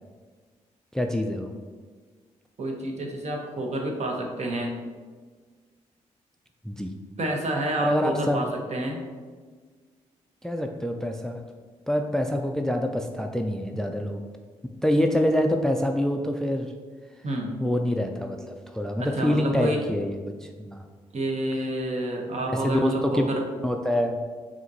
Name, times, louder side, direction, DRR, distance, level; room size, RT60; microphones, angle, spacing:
voice 1, 0.9-1.5 6.7-6.9 7.8-8.4 10.4-11.4 11.9-14.2 14.8-16.7 17.6-20.8 22.6-23.3 23.6-24.2, left 1 dB, 5° left, 4 dB, 0.3 m, -26 dB
voice 2, 2.6-4.7 7.2-9.0 17.2-17.6 19.0-19.8 21.1-23.4, right 1 dB, 50° right, 1 dB, 0.9 m, -29 dB
4.9 x 2.8 x 2.7 m, 1.5 s
supercardioid pair, 50°, 15 cm